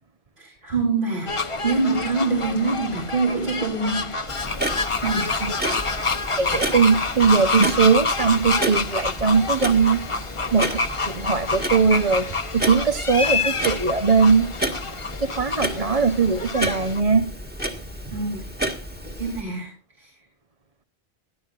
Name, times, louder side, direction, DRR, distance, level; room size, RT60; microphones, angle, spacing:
voice 1, 0.4-4.1 5.0-5.3 18.1-18.7 19.0-20.1, right 3 dB, 55° right, -1 dB, 3.9 m, -25 dB
sound 1, 1.3-17.0, left 3 dB, 30° left, 1.0 m, -27 dB
Clock, 4.3-19.4, right 1 dB, 10° right, 1.9 m, -32 dB
voice 2, 5.4-5.8 6.4-10.0 10.5-12.3 12.5-14.5 15.2-17.3, right 5 dB, 35° right, 7 dB, 1.0 m, -20 dB
21.0 x 13.0 x 2.6 m, 0.30 s
omnidirectional pair, 1.1 m